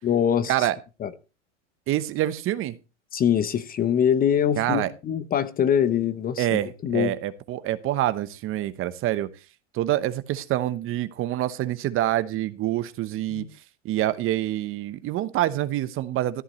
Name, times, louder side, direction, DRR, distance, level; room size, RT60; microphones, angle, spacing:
voice 1, 0.0-0.5 1.0-1.1 3.1-7.1 13.3-13.5, left 9 dB, 25° left, 0.8 m, -23 dB
voice 2, 1.9-2.8 4.6-4.9 6.4-9.3 9.7-13.4 13.8-16.4, right 14 dB, 35° right, 1.0 m, -26 dB
13.5 x 11.0 x 3.1 m
hypercardioid pair, 105°, 36 cm